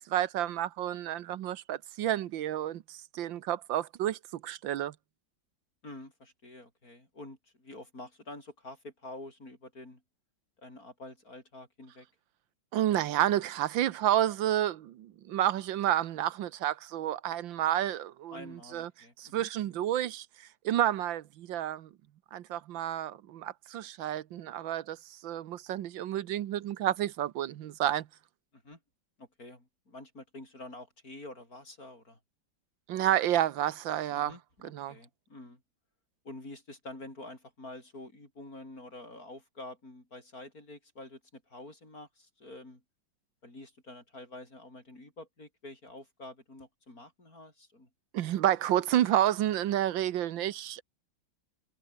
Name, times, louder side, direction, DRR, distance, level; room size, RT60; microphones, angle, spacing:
voice 1, 0.0-4.9 12.7-18.9 19.2-20.3 20.6-21.9 22.3-28.1 32.9-34.3 34.6-34.9 48.1-50.8, right 12 dB, 85° right, 1.6 m, -30 dB
voice 2, 5.8-10.0 10.6-12.1 18.3-19.5 28.5-28.8 29.2-32.2 34.1-35.6 36.2-42.8 43.4-47.9, left 2 dB, 45° left, 8.3 m, -48 dB
omnidirectional pair, 2.1 m